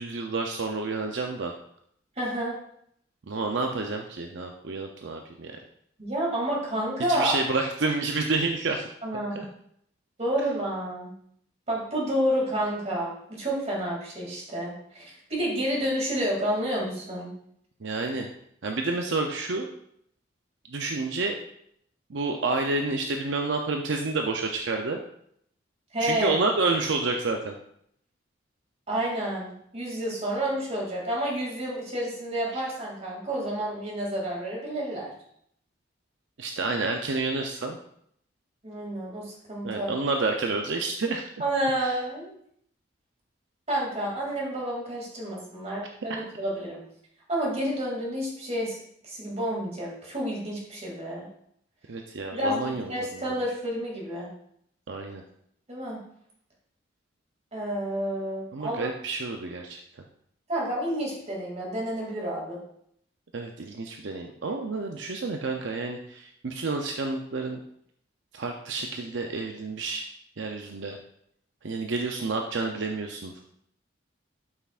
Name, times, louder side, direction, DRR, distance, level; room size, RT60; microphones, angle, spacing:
voice 1, 0.0-1.5 3.3-5.6 7.1-8.9 9.3-9.5 17.8-18.3 18.6-19.7 20.7-21.4 22.1-25.0 26.0-27.6 32.5-32.6 36.4-37.8 39.6-41.2 41.8-41.9 46.1-46.2 51.9-53.2 54.9-55.2 58.5-59.8 63.3-67.6 68.3-70.1 70.4-71.0 71.6-73.4, right 3 dB, 70° right, 3 dB, 0.6 m, -29 dB
voice 2, 2.2-2.6 6.0-7.4 9.0-9.4 10.2-11.1 11.7-17.3 25.9-26.4 28.9-35.1 38.6-39.9 41.4-42.3 43.7-46.8 47.3-48.8 49.0-51.3 52.3-54.3 55.7-56.0 57.5-58.9 60.5-62.6, right 1 dB, 35° right, -3 dB, 2.6 m, -29 dB
12.5 x 5.8 x 2.5 m, 0.70 s
head